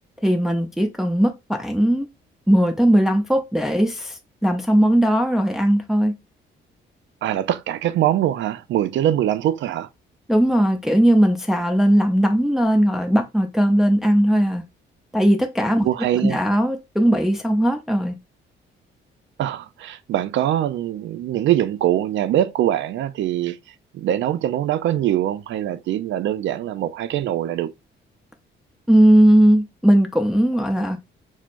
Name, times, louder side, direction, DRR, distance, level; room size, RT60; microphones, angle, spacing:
voice 1, 0.2-2.1 2.5-6.1 10.3-14.6 15.1-15.9 16.2-18.2 28.9-31.0, right 1 dB, ahead, 0.6 m, -18 dB
voice 2, 7.2-9.9 15.8-16.4 19.4-23.6 23.9-27.7, right 12 dB, 70° right, 0.5 m, -23 dB
6.0 x 2.0 x 2.5 m
cardioid pair, 90°, 20 cm